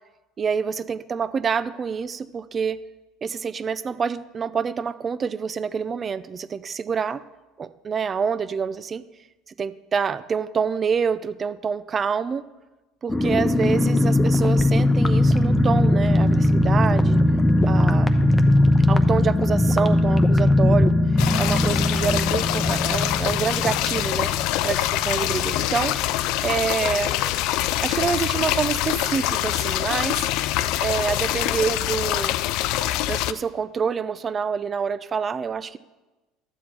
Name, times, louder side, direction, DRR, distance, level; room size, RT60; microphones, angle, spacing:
voice 1, 0.4-2.8 3.2-7.2 7.6-9.0 9.6-12.4 13.0-17.2 17.7-18.1 18.9-24.3 24.6-25.9 26.4-27.2 27.8-30.3 30.8-32.4 33.0-35.8, right 6 dB, 35° right, 15 dB, 0.5 m, -27 dB
sound 1, 13.1-25.5 25.7-25.8 26.1-26.4, left 1 dB, 15° left, 0.9 m, -19 dB
sound 2, 21.2-33.3, left 14 dB, 65° left, 0.4 m, -25 dB
12.0 x 7.4 x 4.4 m, 1.1 s
hypercardioid pair, 75°, 0 cm